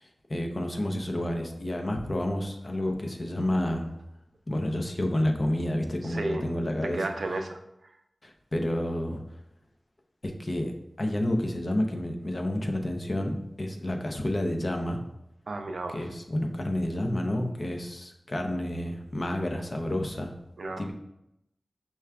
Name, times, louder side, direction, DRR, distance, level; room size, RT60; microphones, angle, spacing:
voice 1, 0.0-3.9 4.5-7.0 8.2-9.2 10.2-15.0 15.9-20.3 20.8-20.9, left 1 dB, 40° left, 3 dB, 0.5 m, -30 dB
voice 2, 6.0-6.4 6.8-7.6 15.5-16.0 20.6-20.8, right 2 dB, 75° right, 5 dB, 0.4 m, -32 dB
5.6 x 2.3 x 3.4 m, 0.83 s
wide cardioid pair, 90°, 0 cm